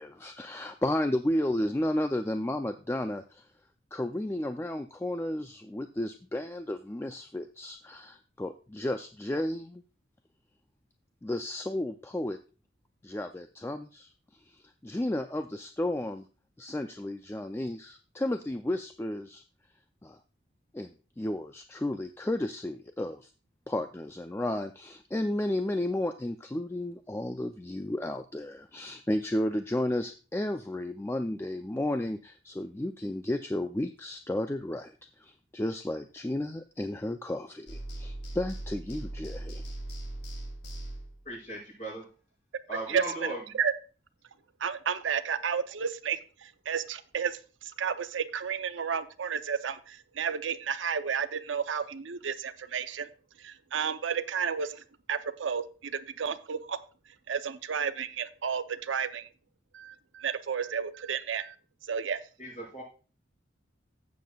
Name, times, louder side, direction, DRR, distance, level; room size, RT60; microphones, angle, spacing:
voice 1, 0.0-3.5 3.9-9.8 11.2-12.4 13.0-16.3 16.6-19.4 20.0-20.2 20.7-20.9 21.2-23.3 23.7-39.6, left 1 dB, 15° left, 8 dB, 0.3 m, -33 dB
sound 1, 37.7-41.2, right 1 dB, 65° left, 2.8 m, -39 dB
voice 2, 41.2-42.0 42.7-43.4 62.4-62.8, right 1 dB, 40° left, -4 dB, 5.9 m, -37 dB
voice 3, 42.9-43.7 44.6-53.1 53.4-54.8 55.1-56.8 57.3-59.3 59.7-61.5 61.8-62.2, right 7 dB, 80° right, 11 dB, 0.6 m, -32 dB
15.5 x 7.5 x 2.3 m, 0.35 s
head